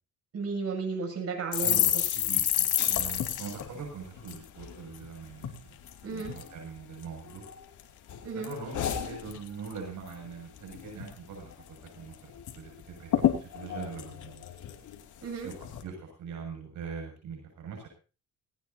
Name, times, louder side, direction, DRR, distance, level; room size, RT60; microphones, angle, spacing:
voice 1, 0.3-1.8 6.0-6.3 8.2-8.5 15.2-15.5, right 5 dB, 55° right, 3 dB, 7.7 m, -33 dB
sound 1, 1.5-5.1 5.4-5.6 5.9-6.5 7.0-7.8 8.1-9.8 10.1-10.3 10.6-11.1 11.5-11.6 11.9-12.6 12.8-12.9 13.1-15.0 15.5-15.8, left 11 dB, 80° left, 2.6 m, -30 dB
voice 2, 1.6-5.7 6.1-7.4 8.3-13.1 13.4-14.4 15.4-17.9, right 6 dB, 75° right, 1 dB, 6.9 m, -42 dB
19.0 x 18.0 x 2.8 m, 0.35 s
cardioid pair, 90°, 30 cm